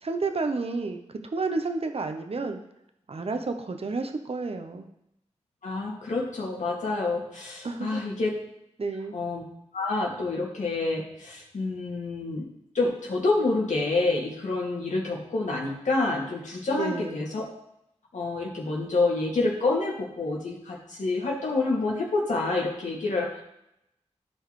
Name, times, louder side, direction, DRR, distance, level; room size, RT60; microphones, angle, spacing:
voice 1, 0.0-2.6 3.1-4.9 7.6-8.0 8.8-9.2 16.7-17.2, right 3 dB, 55° right, 6 dB, 0.9 m, -31 dB
voice 2, 5.6-8.4 9.1-9.4 9.7-12.5 12.7-17.4 18.1-23.4, left 3 dB, 85° left, -2 dB, 2.3 m, -28 dB
13.5 x 4.6 x 3.2 m, 0.80 s
cardioid pair, 50°, 12 cm